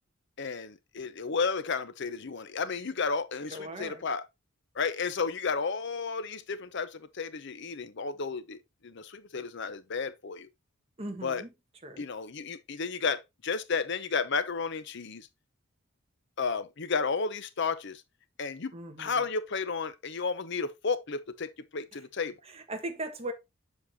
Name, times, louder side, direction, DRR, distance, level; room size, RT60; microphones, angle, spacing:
voice 1, 0.4-4.2 4.8-10.5 11.2-11.4 12.0-15.3 16.4-18.0 18.4-18.7 19.0-22.3, left 5 dB, 55° left, 0.7 m, -32 dB
voice 2, 3.5-4.0 11.0-11.5 11.8-12.0 18.7-19.2 22.4-23.3, right 1 dB, 30° right, 1.4 m, -38 dB
7.3 x 6.5 x 2.8 m
head